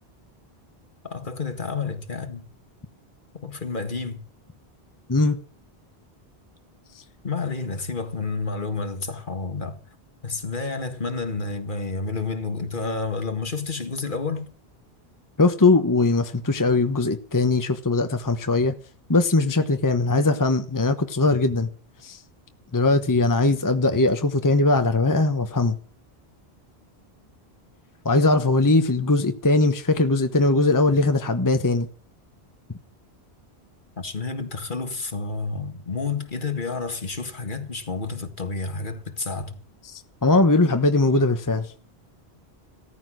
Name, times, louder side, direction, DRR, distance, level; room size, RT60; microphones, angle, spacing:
voice 1, 1.0-2.5 3.3-4.2 7.2-9.8 10.2-14.5 34.0-39.6, left 4 dB, 50° left, 1.9 m, -30 dB
voice 2, 15.4-18.7 19.1-21.7 22.0-22.2 22.7-25.8 28.0-31.9 39.9-41.7, left 2 dB, 20° left, 1.0 m, -20 dB
16.0 x 14.0 x 6.3 m
omnidirectional pair, 1.1 m